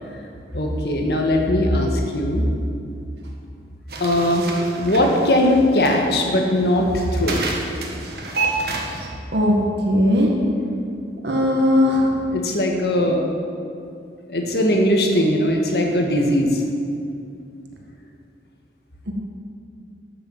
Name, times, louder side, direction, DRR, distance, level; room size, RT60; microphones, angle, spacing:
voice 1, 0.5-2.4 4.0-4.5 4.8-7.4 12.3-13.2 14.3-16.6, left 1 dB, 65° left, 1 dB, 1.7 m, -19 dB
sound 1, 3.9-9.1, right 3 dB, 60° right, 1.6 m, -30 dB
voice 2, 8.6-9.0 9.3-9.6 9.8-10.3 11.2-12.2 19.1-19.2, left 1 dB, 80° right, 0 dB, 1.9 m, -19 dB
12.5 x 7.0 x 7.5 m, 2.4 s
head